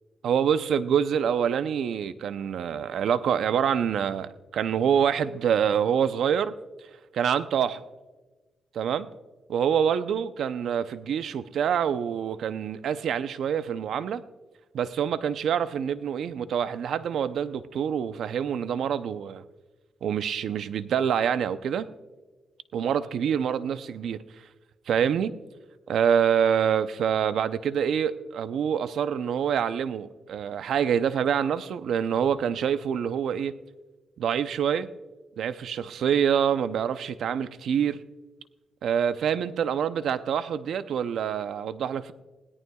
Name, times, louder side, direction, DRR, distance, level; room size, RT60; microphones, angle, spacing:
voice 1, 0.2-6.5 7.1-7.8 8.7-9.1 9.5-14.2 14.7-19.4 20.0-21.9 22.7-24.2 24.9-25.3 25.9-33.6 34.2-34.9 35.4-38.0 38.8-42.1, right 8 dB, 75° right, 13 dB, 0.6 m, -26 dB
20.5 x 17.0 x 2.3 m, 1.2 s
cardioid pair, 95°, 0 cm